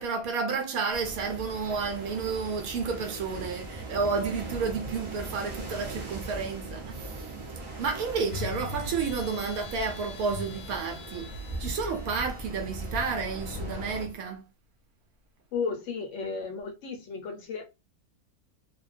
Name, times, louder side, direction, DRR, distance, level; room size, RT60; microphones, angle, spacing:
voice 1, 0.0-7.3 7.8-11.3 11.6-14.5, right 5 dB, 80° right, 1.1 m, -31 dB
sound 1, 0.9-14.0, right 2 dB, 45° right, 0.3 m, -40 dB
sound 2, 8.3-14.2, left 4 dB, 85° left, 1.1 m, -42 dB
voice 2, 15.5-17.6, left 5 dB, 65° left, 0.8 m, -34 dB
2.5 x 2.1 x 2.4 m
omnidirectional pair, 1.5 m